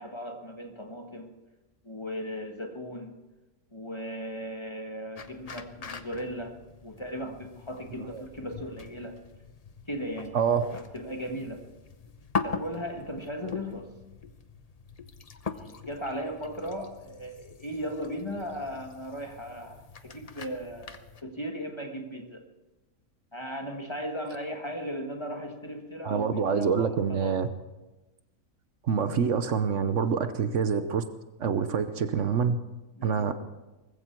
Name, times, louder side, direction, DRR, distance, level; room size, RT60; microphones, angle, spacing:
voice 1, 0.0-1.3 1.8-3.1 3.7-6.5 6.8-9.2 9.9-10.4 10.7-11.6 12.4-13.9 15.5-22.4 23.3-26.3 26.5-27.4 33.0-33.3, equal, 20° left, 4 dB, 1.4 m, -37 dB
sound 1, 5.2-21.2, left 5 dB, 35° left, 0.7 m, -41 dB
voice 2, 26.0-27.5 28.8-31.0 31.4-32.6 33.0-33.3, right 6 dB, 65° right, 10 dB, 1.2 m, -26 dB
19.5 x 15.5 x 4.6 m, 1.1 s
omnidirectional pair, 1.4 m